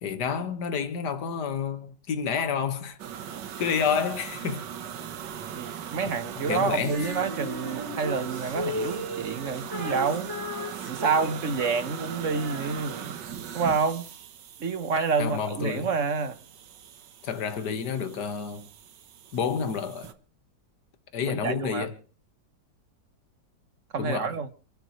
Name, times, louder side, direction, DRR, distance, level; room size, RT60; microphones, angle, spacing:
voice 1, 0.0-3.0 3.6-4.6 6.1-6.2 6.5-7.0 15.2-15.9 17.2-18.7 19.3-20.1 21.1-21.9 24.0-24.3, left 6 dB, 70° left, 2.0 m, -29 dB
sound 1, 3.0-20.1, right 9 dB, 75° right, 1.7 m, -40 dB
voice 2, 5.5-10.3 10.8-13.2 13.5-14.1 14.6-16.4 21.2-21.9 23.9-24.5, right 5 dB, 50° right, 1.3 m, -28 dB
Female singing, 6.9-13.4, left 2 dB, 10° left, 3.0 m, -37 dB
28.0 x 11.5 x 3.1 m
omnidirectional pair, 1.9 m